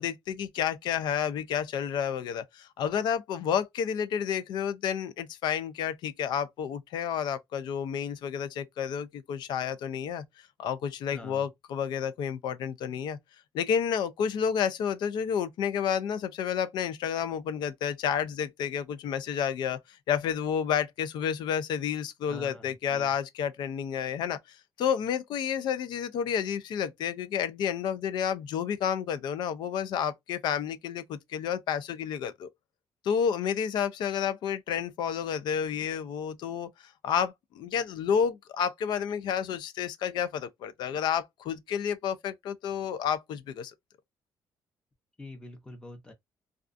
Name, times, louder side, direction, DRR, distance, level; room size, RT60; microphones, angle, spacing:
voice 1, 0.0-10.2 10.6-13.2 13.5-19.8 20.1-32.5 33.0-43.7, left 8 dB, 70° left, 0.4 m, -30 dB
voice 2, 11.1-11.5 22.3-23.1 45.2-46.1, left 1 dB, 10° left, 0.7 m, -45 dB
2.4 x 2.3 x 2.4 m
cardioid pair, 150°, 8 cm